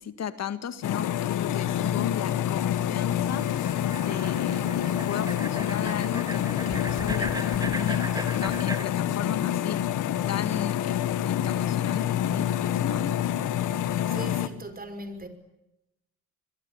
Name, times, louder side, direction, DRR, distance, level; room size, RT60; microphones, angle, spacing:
voice 1, 0.0-9.8 10.3-13.1, left 8 dB, 60° left, 1.9 m, -35 dB
sound 1, 0.8-14.5, left 11 dB, 85° left, 1.8 m, -27 dB
sound 2, 3.3-8.8, right 1 dB, 10° right, 3.5 m, -37 dB
voice 2, 13.8-15.3, right 2 dB, 30° right, 5.5 m, -40 dB
25.5 x 22.5 x 9.9 m
cardioid pair, 90°, 30 cm